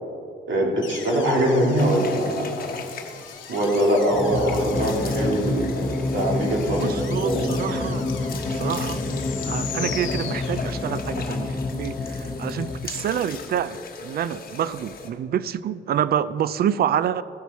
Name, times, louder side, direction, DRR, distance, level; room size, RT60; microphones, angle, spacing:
voice 1, 0.5-2.6 3.5-6.9 7.2-7.5, right 1 dB, 70° right, -2 dB, 2.4 m, -22 dB
sound 1, 0.8-11.1, left 9 dB, 70° left, 0.9 m, -40 dB
sound 2, 1.8-15.1, left 4 dB, 50° left, 1.1 m, -38 dB
sound 3, 4.1-12.8, left 2 dB, 20° left, 1.0 m, -28 dB
voice 2, 6.8-9.0 9.5-17.2, right 9 dB, 50° right, 17 dB, 0.4 m, -27 dB
15.0 x 6.1 x 4.1 m, 2.5 s
cardioid pair, 90°, 20 cm